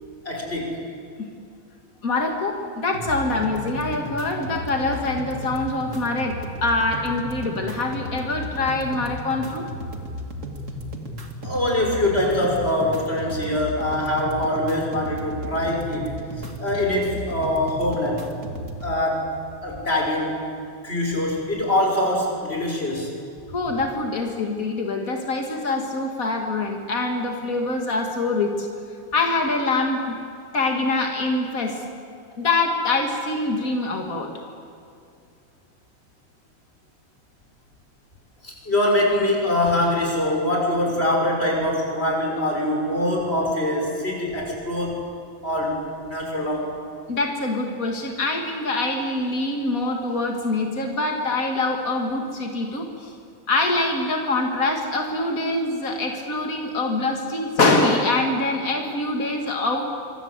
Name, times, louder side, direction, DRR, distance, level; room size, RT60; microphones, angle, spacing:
voice 1, 0.2-0.8 11.4-16.1 16.6-18.2 18.8-19.3 19.6-20.4 20.8-23.1 38.4-45.0 45.4-46.7, left 1 dB, 10° left, 0 dB, 6.1 m, -23 dB
voice 2, 2.0-9.6 23.5-28.7 29.1-30.2 30.5-31.8 32.4-34.3 47.1-53.1 53.5-59.9, left 2 dB, 65° left, 2 dB, 0.8 m, -24 dB
sound 1, 2.9-18.9, equal, 75° right, 0.7 m, -34 dB
25.5 x 25.5 x 8.3 m, 2.4 s
omnidirectional pair, 5.6 m